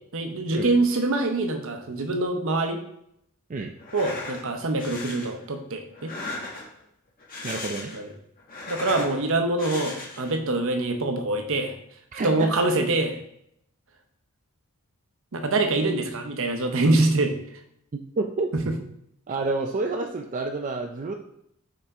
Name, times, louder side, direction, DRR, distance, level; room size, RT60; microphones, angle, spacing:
voice 1, 0.1-2.8 3.9-6.1 7.9-8.1 8.7-11.7 12.2-13.2 15.3-17.3 18.7-18.8, right 2 dB, 60° right, 6 dB, 0.8 m, -24 dB
sound 1, 3.8-4.4 4.8-5.3 5.9-6.8 7.2-8.1 8.4-9.1 9.6-10.3, left 2 dB, 40° left, 1.6 m, -36 dB
voice 2, 7.4-7.9 12.1-12.3 18.2-18.5 19.3-21.1, right 3 dB, 35° right, 3 dB, 0.4 m, -29 dB
5.6 x 4.9 x 3.6 m, 0.74 s
head